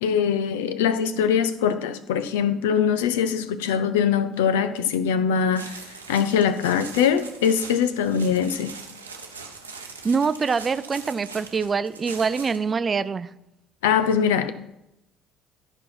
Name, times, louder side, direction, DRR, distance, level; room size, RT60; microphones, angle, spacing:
voice 1, 0.0-5.7 6.1-8.7 13.8-14.5, left 7 dB, 75° left, 0.6 m, -22 dB
sound 1, 5.5-12.7, right 4 dB, 90° right, 0.9 m, -41 dB
voice 2, 10.0-13.3, right 5 dB, 35° right, 0.5 m, -24 dB
12.5 x 4.5 x 5.8 m
figure-of-eight pair, 55°, 0 cm